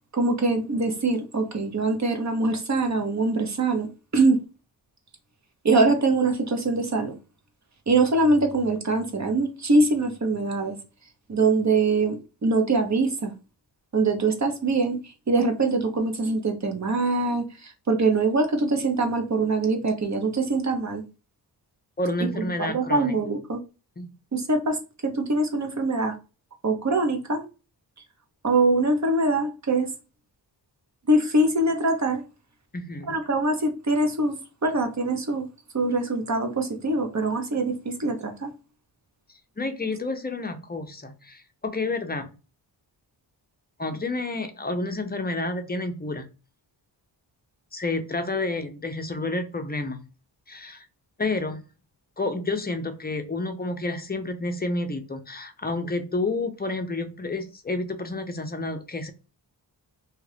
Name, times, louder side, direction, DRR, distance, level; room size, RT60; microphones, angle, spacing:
voice 1, 0.1-3.9 4.1-4.4 5.6-7.2 7.9-10.8 11.3-13.3 13.9-21.0 22.2-23.6 24.3-26.2 26.6-27.4 28.4-29.9 31.1-32.2 33.1-35.5 35.7-38.5, right 2 dB, 40° right, 0.8 m, -23 dB
voice 2, 22.0-23.1 24.0-24.1 32.7-33.1 39.6-42.3 43.8-46.3 47.7-50.0 50.5-50.9 51.2-51.6 52.2-59.1, left 2 dB, 25° left, 0.5 m, -30 dB
2.8 x 2.4 x 3.3 m
wide cardioid pair, 105°, 42 cm